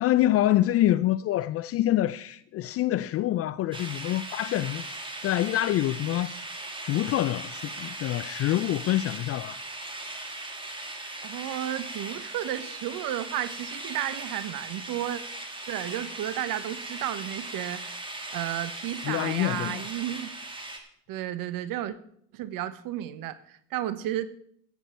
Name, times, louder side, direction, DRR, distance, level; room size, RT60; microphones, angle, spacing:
voice 1, 0.0-4.8 5.2-6.3 6.9-9.6 19.0-19.8, left 14 dB, 35° left, 0.4 m, -26 dB
sound 1, 3.7-20.8, right 2 dB, 10° right, 2.2 m, -39 dB
voice 2, 11.2-15.2 15.7-20.3 21.1-22.0 22.3-24.3, right 12 dB, 45° right, 1.1 m, -33 dB
14.0 x 9.0 x 4.4 m
hypercardioid pair, 80°, 46 cm